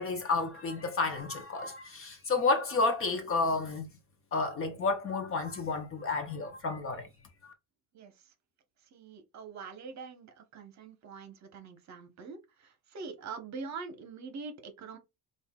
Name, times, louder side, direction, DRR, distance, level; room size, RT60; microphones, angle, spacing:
voice 1, 0.0-3.9 4.3-7.1 7.4-7.5, left 3 dB, 35° left, 0.7 m, -31 dB
voice 2, 8.9-15.0, right 4 dB, 40° right, 1.0 m, -44 dB
5.4 x 2.5 x 2.3 m
cardioid pair, 155°, 41 cm